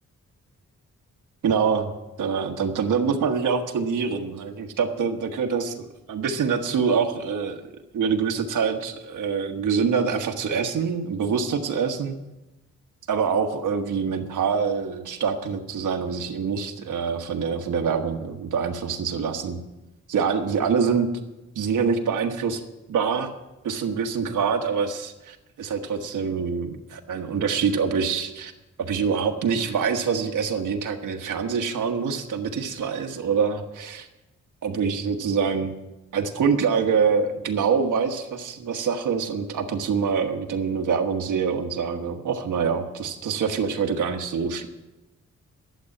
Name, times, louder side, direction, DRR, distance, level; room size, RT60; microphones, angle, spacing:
voice 1, 1.4-1.9 2.2-7.6 7.9-12.1 13.1-19.6 20.1-21.1 21.5-22.6 22.9-23.3 23.6-28.5 28.8-34.1 34.6-35.7 36.1-44.7, right 6 dB, 85° right, 4 dB, 1.3 m, -25 dB
12.0 x 7.6 x 9.6 m, 1.0 s
cardioid pair, 95°, 30 cm